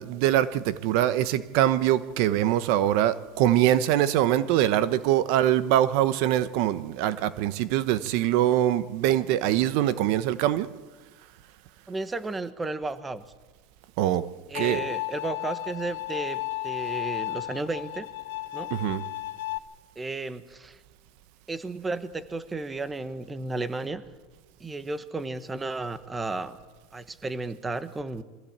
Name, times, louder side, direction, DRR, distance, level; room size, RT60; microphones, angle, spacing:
voice 1, 0.0-10.7 14.0-14.3 14.5-14.8 18.7-19.0, right 12 dB, 60° right, 15 dB, 0.9 m, -23 dB
voice 2, 11.9-13.3 14.5-18.1 18.5-18.7 20.0-20.8 21.5-24.0 24.6-26.6 26.9-28.2, right 3 dB, 10° right, 13 dB, 1.1 m, -33 dB
Bowed string instrument, 14.5-19.6, left 18 dB, 90° left, 1.5 m, -33 dB
22.5 x 15.0 x 8.7 m, 1.3 s
supercardioid pair, 145°, 0 cm